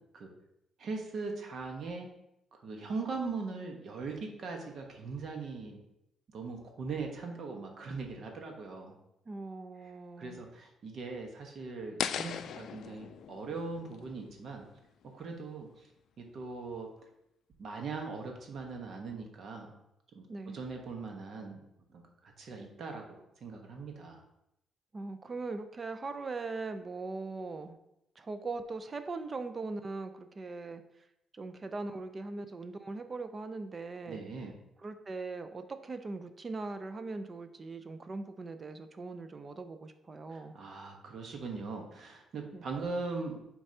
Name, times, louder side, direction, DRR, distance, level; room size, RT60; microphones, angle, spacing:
voice 1, 0.8-2.1 2.5-5.8 6.3-8.9 10.2-14.7 15.0-15.7 16.2-16.9 17.6-19.7 20.1-20.3 20.5-21.6 21.9-24.2 34.1-34.6 40.3-43.4, right 4 dB, 60° right, 3 dB, 1.1 m, -40 dB
voice 2, 9.3-10.4 20.3-20.6 24.9-27.8 28.2-30.8 31.3-34.2 34.8-40.6 42.5-42.6, right 3 dB, 35° right, 9 dB, 0.6 m, -40 dB
sound 1, 12.0-15.0, left 9 dB, 70° left, 0.3 m, -39 dB
7.4 x 4.6 x 2.8 m, 0.83 s
cardioid pair, 90°, 0 cm